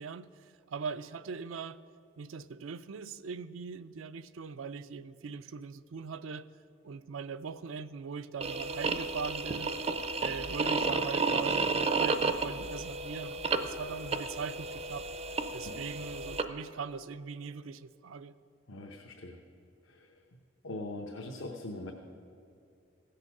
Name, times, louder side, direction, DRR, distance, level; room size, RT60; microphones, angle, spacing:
voice 1, 0.0-1.8 2.2-6.5 6.8-9.7 10.2-15.1 15.5-18.3, right 5 dB, 90° right, 13 dB, 0.4 m, -41 dB
sound 1, 8.4-16.4, right 4 dB, 30° right, 0.4 m, -32 dB
voice 2, 18.7-19.4 19.8-20.2 20.6-21.9, left 2 dB, 85° left, 1 dB, 0.9 m, -42 dB
16.0 x 6.7 x 5.9 m, 2.5 s
head